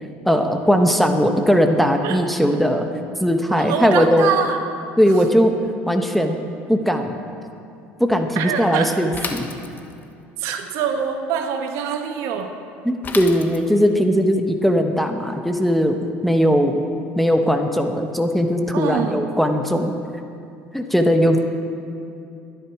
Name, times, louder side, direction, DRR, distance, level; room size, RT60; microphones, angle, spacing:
voice 1, 0.2-2.9 3.2-4.3 5.0-5.5 5.9-6.4 6.7-7.1 8.0-9.5 12.8-16.8 17.2-19.9 20.7-21.4, equal, ahead, 5 dB, 1.1 m, -19 dB
voice 2, 3.6-4.6 8.3-8.9 9.2-9.4 10.4-12.5 18.7-19.2, right 7 dB, 70° right, 5 dB, 1.4 m, -24 dB
Bicycle / Mechanisms, 9.1-10.1 13.0-14.0, left 5 dB, 35° left, 1.3 m, -32 dB
20.5 x 10.5 x 4.8 m, 2.6 s
supercardioid pair, 105°, 6 cm